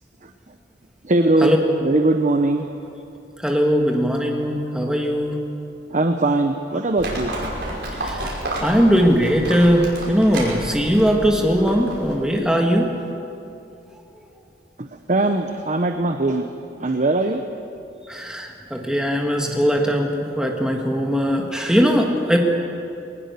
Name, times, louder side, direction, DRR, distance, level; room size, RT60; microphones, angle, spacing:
voice 1, 1.0-1.5 1.8-2.7 5.9-7.3 14.8-16.5 16.8-17.4, right 2 dB, 45° right, 6 dB, 0.9 m, -20 dB
voice 2, 3.4-5.4 8.0-12.9 18.1-22.4, equal, 5° right, 1 dB, 1.6 m, -20 dB
Livestock farm animals working animals, 7.0-12.2, right 1 dB, 75° right, 5.7 m, -30 dB
21.0 x 20.0 x 6.9 m, 2.7 s
head